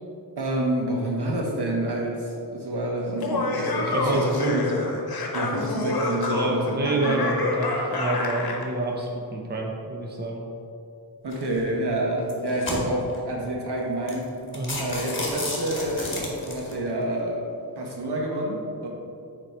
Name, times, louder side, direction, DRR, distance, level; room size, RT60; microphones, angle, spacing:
voice 1, 0.4-4.6 5.3-7.3 11.2-14.3 14.8-17.4 17.7-18.9, right 1 dB, 70° right, -1 dB, 1.2 m, -28 dB
Laughter, 3.1-8.7, left 2 dB, 60° left, 1.0 m, -27 dB
voice 2, 3.9-4.8 6.3-10.4 14.5-14.8, right 2 dB, 25° right, 0 dB, 0.7 m, -28 dB
sound 1, 11.3-11.6 12.2-13.2 13.7-13.8 14.1-14.2 14.5-16.7, left 2 dB, 30° left, 1.4 m, -32 dB
6.9 x 4.3 x 4.5 m, 2.6 s
wide cardioid pair, 130°, 41 cm